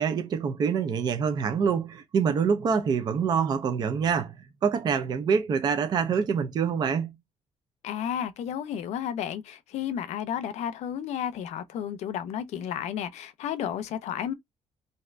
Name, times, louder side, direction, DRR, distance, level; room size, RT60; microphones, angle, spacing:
voice 1, 0.0-4.4 4.6-7.2, right 6 dB, 35° right, 0.4 m, -26 dB
voice 2, 7.8-14.3, left 9 dB, 75° left, 0.6 m, -32 dB
2.7 x 2.4 x 3.1 m
cardioid pair, 170°, 12 cm